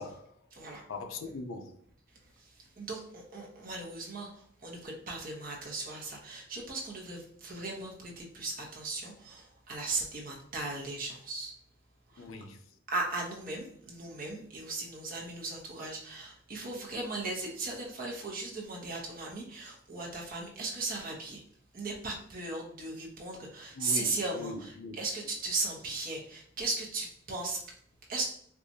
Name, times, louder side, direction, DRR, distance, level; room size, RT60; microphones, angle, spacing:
voice 1, 0.0-0.3 0.9-1.8 12.2-12.6 23.8-24.9, left 3 dB, 85° left, 0.5 m, -40 dB
voice 2, 0.5-0.8 2.2-11.5 12.1-12.3 12.9-21.4 21.7-27.6 28.1-28.2, right 3 dB, 45° right, 0.9 m, -37 dB
4.5 x 2.4 x 2.6 m
head